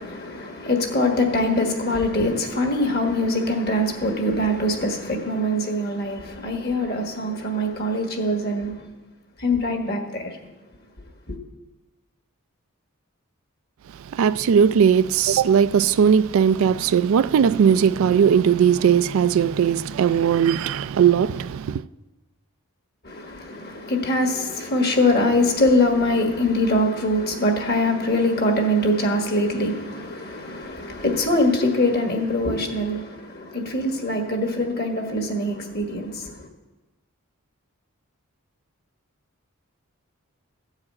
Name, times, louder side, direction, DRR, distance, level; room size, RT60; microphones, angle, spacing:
voice 1, 0.0-8.8 9.4-10.4 11.3-11.4 23.0-36.4, left 1 dB, 45° left, 1.6 m, -23 dB
voice 2, 14.0-21.9, right 7 dB, 70° right, 0.3 m, -18 dB
14.0 x 4.9 x 8.5 m
head